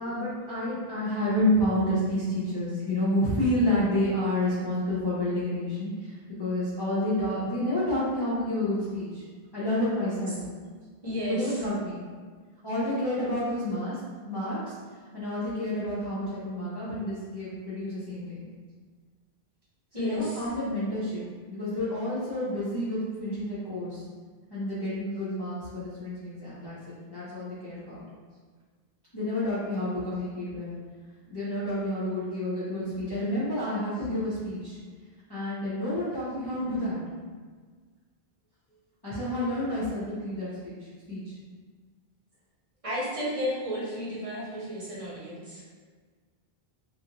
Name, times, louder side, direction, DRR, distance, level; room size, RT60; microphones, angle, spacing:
voice 1, 0.0-9.3 9.5-10.4 11.3-12.0 12.6-18.5 19.9-21.2 21.5-24.0 24.5-28.0 29.1-30.8 31.3-34.8 35.3-37.0 39.0-41.4, left 1 dB, 25° left, -11 dB, 0.6 m, -29 dB
voice 2, 11.0-11.5 19.9-20.4 42.8-45.6, equal, 35° right, -8 dB, 1.0 m, -32 dB
2.9 x 2.5 x 2.9 m, 1.5 s
omnidirectional pair, 1.0 m